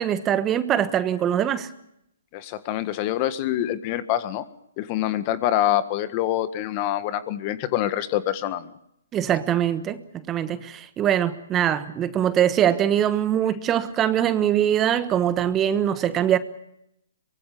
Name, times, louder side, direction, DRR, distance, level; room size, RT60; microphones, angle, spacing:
voice 1, 0.0-1.7 9.1-10.0 10.3-16.4, right 10 dB, 20° right, 12 dB, 1.3 m, -22 dB
voice 2, 2.3-4.4 4.8-8.7, left 12 dB, 35° left, 12 dB, 1.6 m, -25 dB
24.0 x 22.5 x 7.0 m, 0.79 s
hypercardioid pair, 135°, 0 cm